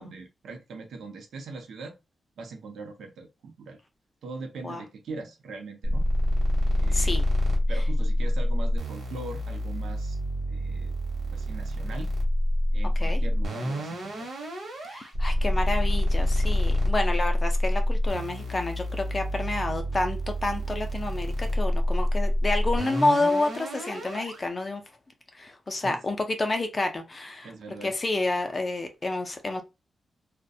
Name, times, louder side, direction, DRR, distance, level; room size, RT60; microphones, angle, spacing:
voice 1, 0.0-2.0 2.4-3.8 4.2-6.1 6.8-7.2 7.7-10.2 10.5-10.9 11.3-12.1 12.7-14.3 25.8-26.0 27.4-27.9, right 3 dB, 80° right, 0.6 m, -41 dB
sound 1, 5.8-24.4, left 1 dB, 60° right, 0.9 m, -27 dB
voice 2, 6.9-7.3 13.0-13.2 14.8-24.8 25.3-27.5 27.8-29.6, left 2 dB, 25° left, 0.4 m, -29 dB
2.3 x 2.1 x 2.6 m
wide cardioid pair, 175°, 0 cm